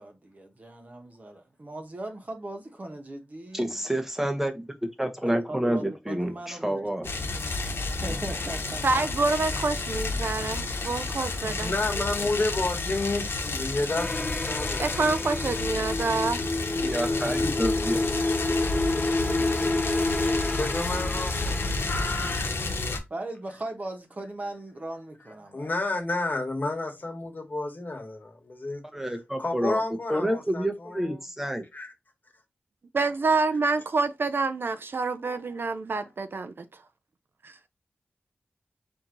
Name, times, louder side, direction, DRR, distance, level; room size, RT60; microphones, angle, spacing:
voice 1, 0.0-3.8 5.3-7.1 8.0-9.3 23.1-25.7, right 2 dB, 40° right, 1.1 m, -39 dB
voice 2, 3.5-4.5 5.0-7.1 16.8-18.0 28.9-29.8 30.1-31.6, equal, 5° right, 0.9 m, -28 dB
sound 1, 7.0-23.0, left 3 dB, 90° left, 0.9 m, -31 dB
voice 3, 8.8-11.7 14.8-16.4 32.9-36.6 37.4-37.6, right 3 dB, 65° right, 0.5 m, -27 dB
voice 4, 11.2-15.1 17.0-18.9 20.5-22.4 25.2-28.8 29.4-31.2 31.7-31.9, left 2 dB, 50° left, 1.3 m, -32 dB
sound 2, 13.9-23.0, left 2 dB, 20° left, 0.5 m, -29 dB
4.4 x 2.8 x 3.8 m
wide cardioid pair, 100°, 4 cm